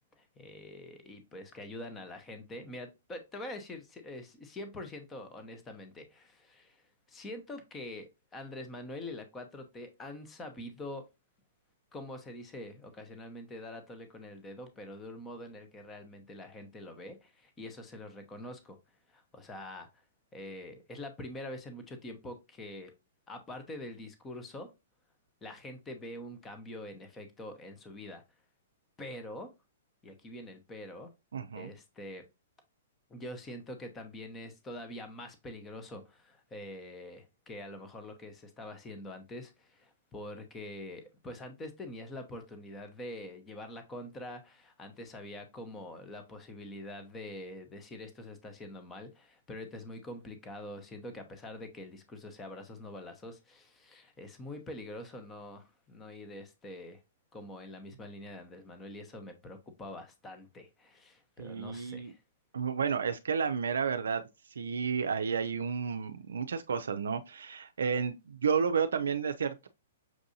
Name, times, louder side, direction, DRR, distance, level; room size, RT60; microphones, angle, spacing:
voice 1, 0.2-6.8 7.1-11.0 11.9-18.8 19.1-19.9 20.3-22.9 23.3-24.7 25.4-28.2 29.0-29.5 30.0-31.1 31.5-32.2 33.1-57.0 57.3-62.2, left 1 dB, 15° left, 0.8 m, -45 dB
voice 2, 31.3-31.7 61.4-62.1 62.5-64.2 64.6-69.7, right 6 dB, 80° right, 0.4 m, -31 dB
6.1 x 2.6 x 2.7 m
hypercardioid pair, 130°, 0 cm